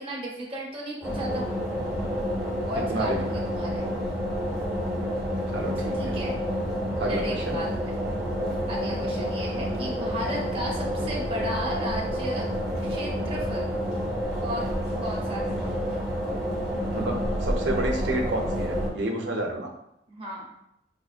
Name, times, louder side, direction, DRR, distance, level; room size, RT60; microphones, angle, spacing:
voice 1, 0.0-1.5 2.6-3.9 6.0-6.3 7.0-7.9 8.7-12.5 12.8-13.7 14.4-14.7 15.0-15.6 20.1-20.5, equal, 30° right, -4 dB, 1.0 m, -34 dB
sound 1, 1.0-18.9, equal, 5° right, 0.9 m, -29 dB
voice 2, 2.9-3.2 5.5-6.1 7.0-7.6 16.9-19.7, right 1 dB, 75° right, 1 dB, 0.7 m, -30 dB
5.1 x 2.6 x 2.4 m, 0.80 s
head